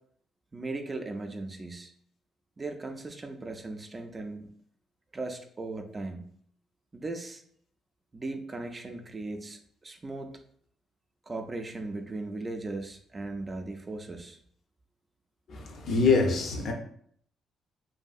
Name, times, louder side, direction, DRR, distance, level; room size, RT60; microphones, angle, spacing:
voice 1, 0.5-1.9 2.6-4.5 5.1-6.2 6.9-7.4 8.1-10.4 11.3-14.4, right 2 dB, 30° right, 0.3 m, -38 dB
voice 2, 15.5-16.7, left 4 dB, 65° left, 0.5 m, -25 dB
2.6 x 2.6 x 2.3 m
cardioid pair, 90°, 0 cm